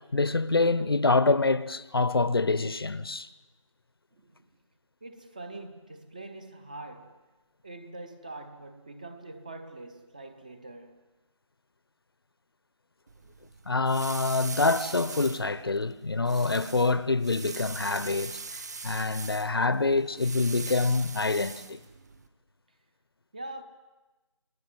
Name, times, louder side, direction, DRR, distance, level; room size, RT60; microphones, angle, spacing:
voice 1, 0.0-3.3 13.7-21.8, left 3 dB, 45° left, 0.9 m, -26 dB
voice 2, 4.1-4.5 5.0-7.2 7.6-10.9 23.3-23.6, right 2 dB, 15° right, 0.9 m, -43 dB
sound 1, 13.1-22.3, right 4 dB, 30° right, 1.5 m, -42 dB
29.5 x 19.5 x 9.4 m
figure-of-eight pair, 170°, 17 cm